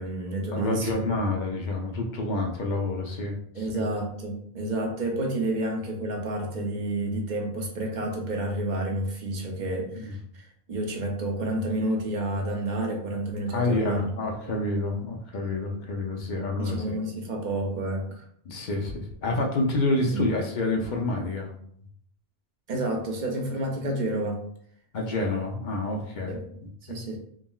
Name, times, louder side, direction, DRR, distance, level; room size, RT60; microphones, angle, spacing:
voice 1, 0.0-0.9 3.5-14.1 14.5-14.6 16.6-18.2 19.3-19.4 20.0-20.2 22.7-24.4 26.3-26.4 26.8-27.2, right 1 dB, 55° right, 1 dB, 0.7 m, -30 dB
voice 2, 0.5-3.8 9.9-10.2 13.5-16.9 18.5-21.5 24.9-26.4 26.9-27.0, left 2 dB, 55° left, 1 dB, 0.6 m, -28 dB
3.6 x 2.0 x 2.3 m, 0.65 s
omnidirectional pair, 1.0 m